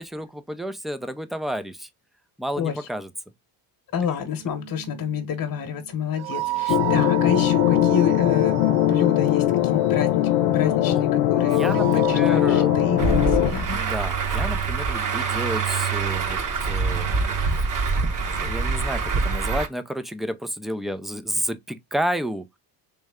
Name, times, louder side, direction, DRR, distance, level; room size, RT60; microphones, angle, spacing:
voice 1, 0.0-1.9 2.4-3.1 6.4-6.8 10.8-11.0 11.5-12.7 13.7-17.7 18.0-22.4, equal, ahead, 0.3 m, -31 dB
voice 2, 3.9-11.8 12.1-13.8, left 7 dB, 45° left, 1.0 m, -29 dB
sound 1, 4.2-18.7, right 16 dB, 85° right, 0.7 m, -33 dB
sound 2, 6.7-13.5, left 14 dB, 85° left, 0.7 m, -20 dB
Truck, 13.0-19.7, right 4 dB, 40° right, 1.1 m, -25 dB
3.2 x 3.1 x 3.5 m
cardioid pair, 95°, 48 cm